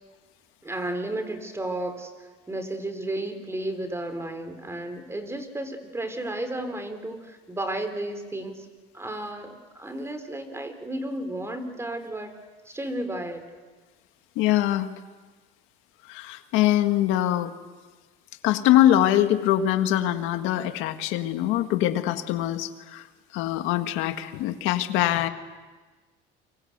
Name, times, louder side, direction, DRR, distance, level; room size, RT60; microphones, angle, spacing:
voice 1, 0.6-8.7 8.9-12.3 12.7-13.4, right 1 dB, 15° right, 8 dB, 3.9 m, -33 dB
voice 2, 14.4-14.9 16.1-17.5 18.4-23.0 23.3-25.3, left 13 dB, 80° left, 8 dB, 1.8 m, -23 dB
29.0 x 24.5 x 8.1 m, 1.3 s
cardioid pair, 110°, 20 cm